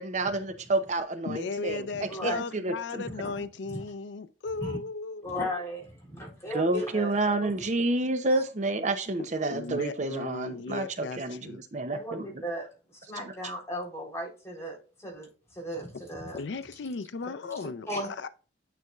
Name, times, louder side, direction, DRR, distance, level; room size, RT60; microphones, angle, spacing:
voice 1, 0.0-3.0 6.5-12.3, right 2 dB, 40° right, 0.7 m, -29 dB
voice 2, 1.3-5.3 9.5-11.6 16.3-18.3, left 4 dB, 85° left, 0.5 m, -36 dB
voice 3, 2.1-2.4 3.1-3.3 3.7-3.8 4.6-4.7 5.2-7.1 7.4-7.6 8.3-8.4 11.9-12.7 13.1-16.4 17.9-18.1, equal, 15° left, 3.5 m, -36 dB
9.3 x 5.3 x 2.4 m
head